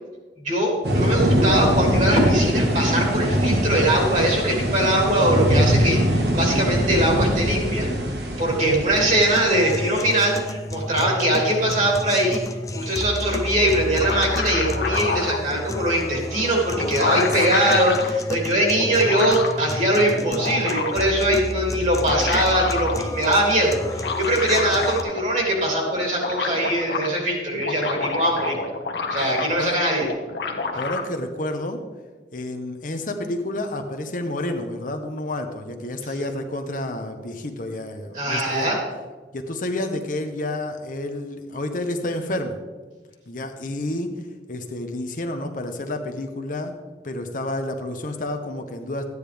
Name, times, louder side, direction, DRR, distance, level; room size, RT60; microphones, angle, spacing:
voice 1, 0.4-7.9 8.4-12.4 12.7-28.5 29.1-30.1 38.1-38.8, right 1 dB, 45° right, -1 dB, 3.1 m, -21 dB
sound 1, 0.8-9.7, equal, 70° right, 1.5 m, -22 dB
voice 2, 8.5-8.8 17.1-17.3 29.6-29.7 30.7-31.8 32.3-38.7 39.3-42.6 43.3-44.1 44.5-46.8 47.0-49.0, left 1 dB, 50° left, 5 dB, 0.9 m, -30 dB
sound 2, 9.0-25.0, left 1 dB, 20° left, 0.5 m, -31 dB
sound 3, 13.7-15.4 16.4-16.5 16.7-18.1 18.8-19.6 20.1-21.1 21.8-23.0 23.9-25.3 25.6-25.7 25.9-27.1 27.5-29.7 30.0-31.0, left 4 dB, 75° left, 1.2 m, -28 dB
13.5 x 9.6 x 3.5 m, 1.3 s
head